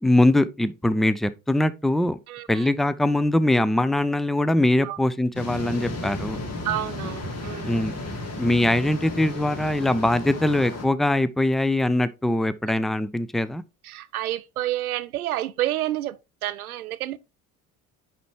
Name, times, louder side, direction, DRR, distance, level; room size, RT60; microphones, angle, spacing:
voice 1, 0.0-2.2 2.5-6.4 7.7-7.9 8.4-13.6, left 1 dB, ahead, 0.7 m, -22 dB
voice 2, 2.3-2.7 4.8-5.0 6.6-7.9 13.8-17.2, right 14 dB, 90° right, 0.5 m, -29 dB
sound 1, 5.3-10.8, left 2 dB, 35° left, 2.5 m, -33 dB
10.0 x 4.3 x 3.6 m
hypercardioid pair, 55°, 42 cm